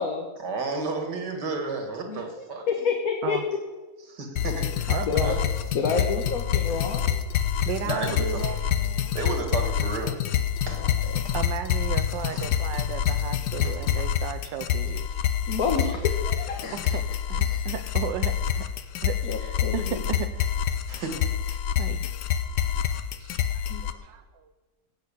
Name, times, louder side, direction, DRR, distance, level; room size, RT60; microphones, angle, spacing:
voice 1, 0.4-2.7 4.1-5.4 6.7-6.8 7.8-8.5 9.1-10.3 10.7-10.9 11.2-11.4 12.3-12.5 13.0-13.2 13.6-13.8 15.1-15.2 15.9-16.0 20.9-21.6, right 3 dB, 65° right, 5 dB, 2.3 m, -33 dB
voice 2, 2.5-3.6 5.0-5.4 5.7-7.2 10.8-11.2 15.5-17.0 17.5-17.6 19.2-20.0 23.7-23.8, left 5 dB, 55° left, 2 dB, 1.6 m, -29 dB
sound 1, 4.4-23.9, left 9 dB, 70° left, 1.3 m, -27 dB
voice 3, 4.9-5.4 7.6-9.1 11.3-15.1 16.9-17.0 17.3-18.6 19.0-20.5 21.8-22.0 23.2-24.5, right 9 dB, 85° right, 7 dB, 1.4 m, -35 dB
16.5 x 6.4 x 8.3 m, 1.2 s
omnidirectional pair, 2.0 m